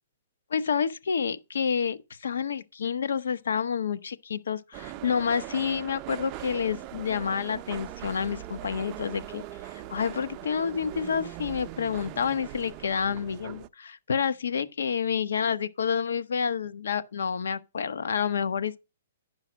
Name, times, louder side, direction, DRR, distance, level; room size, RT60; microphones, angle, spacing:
voice 1, 0.5-18.8, left 6 dB, 80° left, 0.8 m, -29 dB
sound 1, 4.7-13.7, right 14 dB, 30° right, 0.5 m, -41 dB
10.0 x 5.6 x 6.2 m
hypercardioid pair, 155°, 0 cm